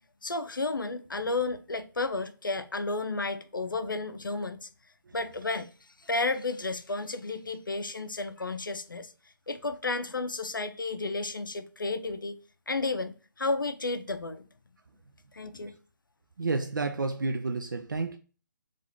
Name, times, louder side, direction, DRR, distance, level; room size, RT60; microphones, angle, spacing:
voice 1, 0.2-4.7 5.1-9.1 9.5-12.4 12.7-14.4 15.3-15.7, left 3 dB, 80° left, 0.5 m, -32 dB
voice 2, 16.4-18.2, right 3 dB, 70° right, 0.4 m, -30 dB
3.6 x 2.5 x 4.3 m
figure-of-eight pair, 140°, 11 cm